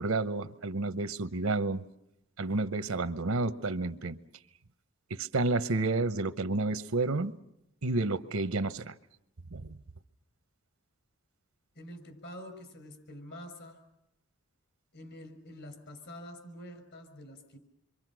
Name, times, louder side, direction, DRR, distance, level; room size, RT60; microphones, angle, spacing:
voice 1, 0.0-1.8 2.4-4.2 5.1-7.4 7.8-8.9 9.5-9.8, right 3 dB, 80° right, 0.9 m, -30 dB
voice 2, 11.7-13.8 14.9-17.6, left 1 dB, 60° left, 6.1 m, -47 dB
27.5 x 24.5 x 6.2 m
head